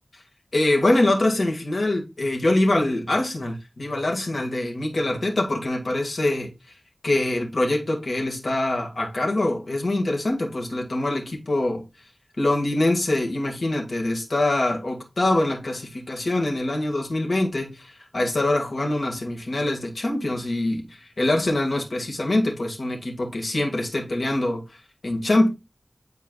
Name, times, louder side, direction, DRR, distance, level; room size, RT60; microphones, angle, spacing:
voice 1, 0.5-6.5 7.0-11.8 12.4-24.6 25.0-25.5, left 1 dB, 80° left, 2.0 m, -24 dB
9.6 x 4.6 x 2.4 m
wide cardioid pair, 70°, 0 cm